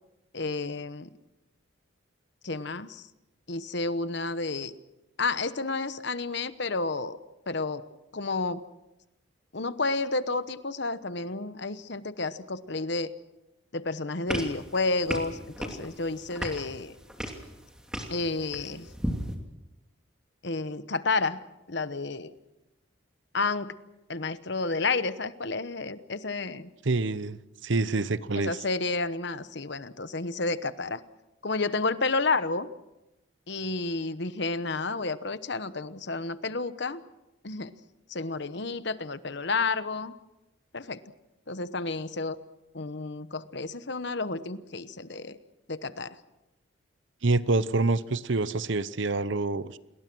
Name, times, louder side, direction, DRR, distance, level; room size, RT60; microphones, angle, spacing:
voice 1, 0.3-1.1 2.4-3.1 3.5-4.7 5.2-7.2 7.5-7.8 8.1-8.6 9.5-13.1 13.7-17.0 18.1-18.9 20.4-21.4 21.7-22.3 23.3-23.7 24.1-26.7 28.3-31.0 31.4-32.7 33.5-37.0 37.4-37.7 38.1-40.1 40.7-41.0 41.5-42.4 42.7-45.4 45.7-46.2, left 3 dB, 55° left, 13 dB, 1.0 m, -31 dB
sound 1, 14.3-19.4, equal, 5° right, 2.7 m, -36 dB
voice 2, 26.8-28.6 47.2-49.8, right 3 dB, 60° right, 16 dB, 0.8 m, -27 dB
28.5 x 21.0 x 6.2 m, 0.96 s
head